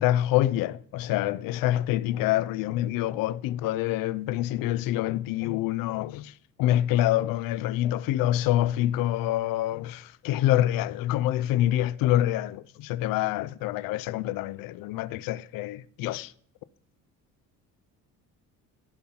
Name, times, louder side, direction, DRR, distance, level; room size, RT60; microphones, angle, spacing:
voice 1, 0.0-6.3 6.6-16.3, left 13 dB, 80° left, 0.5 m, -26 dB
15.5 x 5.4 x 4.3 m
cardioid pair, 105°, 33 cm